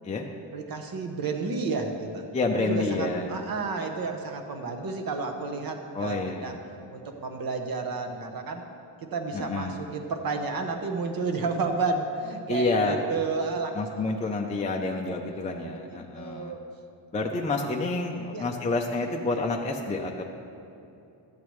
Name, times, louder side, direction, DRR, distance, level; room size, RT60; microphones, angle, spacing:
voice 1, 0.5-2.3 2.6-6.6 6.9-8.6 9.0-14.1 16.1-16.6 17.5-17.7 18.3-18.5, right 4 dB, 50° right, 4 dB, 1.0 m, -31 dB
voice 2, 2.3-3.3 5.9-6.6 9.3-9.8 12.5-13.0 13.7-16.5 17.1-20.2, left 3 dB, 15° left, 1 dB, 0.4 m, -28 dB
13.0 x 8.6 x 3.2 m, 2.8 s
cardioid pair, 150°, 45 cm